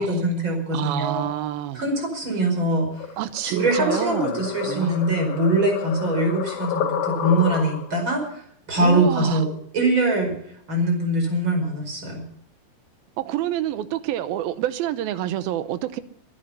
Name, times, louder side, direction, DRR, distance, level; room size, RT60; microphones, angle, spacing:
voice 1, 0.0-1.3 1.7-3.1 3.4-8.4 8.7-9.5 9.7-10.4 10.7-12.2, right 1 dB, 30° right, 3 dB, 5.5 m, -23 dB
voice 2, 0.7-1.8 2.3-2.5 3.2-5.0 8.8-9.4 13.2-16.0, right 12 dB, 80° right, 13 dB, 2.7 m, -28 dB
sound 1, 3.0-8.0, left 8 dB, 80° left, 3.6 m, -30 dB
23.5 x 10.5 x 5.6 m, 0.67 s
omnidirectional pair, 4.2 m